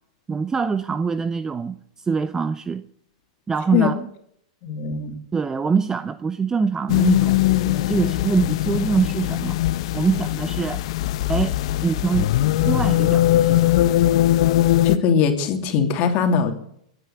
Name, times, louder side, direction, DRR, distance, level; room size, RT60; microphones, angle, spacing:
voice 1, 0.3-2.8 3.5-4.1 5.3-9.6 9.9-10.8 11.3-11.5 11.8-12.3 12.6-13.7, right 5 dB, 15° right, 0.6 m, -24 dB
voice 2, 4.6-5.1 14.8-16.5, left 6 dB, 45° left, 2.9 m, -20 dB
sound 1, 6.9-15.0, left 14 dB, 60° left, 0.8 m, -20 dB
23.0 x 9.1 x 6.8 m
hypercardioid pair, 115°, 3 cm